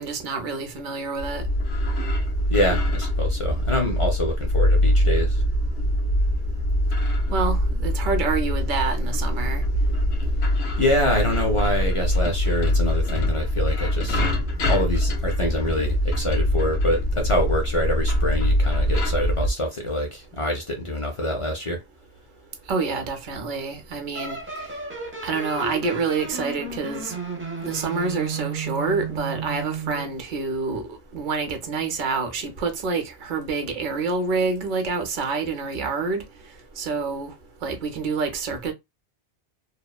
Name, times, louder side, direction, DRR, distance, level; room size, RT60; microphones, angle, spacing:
voice 1, 0.0-1.4 7.3-9.6 22.7-24.4 25.2-27.1 27.6-36.2 36.8-37.3 37.6-38.7, right 4 dB, 50° right, 0.7 m, -27 dB
sound 1, 1.2-19.5, equal, 75° left, 0.9 m, -23 dB
voice 2, 2.5-5.4 10.8-21.8, left 1 dB, 45° left, 0.4 m, -26 dB
sound 2, 24.1-30.2, right 5 dB, 20° right, 0.3 m, -33 dB
2.8 x 2.0 x 2.2 m
omnidirectional pair, 1.1 m